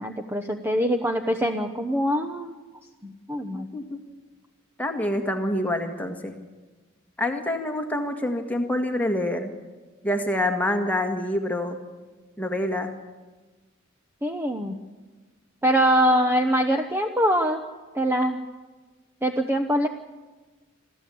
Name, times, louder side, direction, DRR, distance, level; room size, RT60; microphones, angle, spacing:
voice 1, 0.0-2.5 3.0-3.7 14.2-14.8 15.6-17.6 17.9-18.4 19.2-19.9, equal, 10° right, 5 dB, 0.9 m, -23 dB
voice 2, 3.5-4.0 4.8-6.3 7.2-9.5 10.0-11.8 12.4-12.9, left 1 dB, 5° left, 4 dB, 1.9 m, -26 dB
27.0 x 14.5 x 8.6 m, 1.3 s
head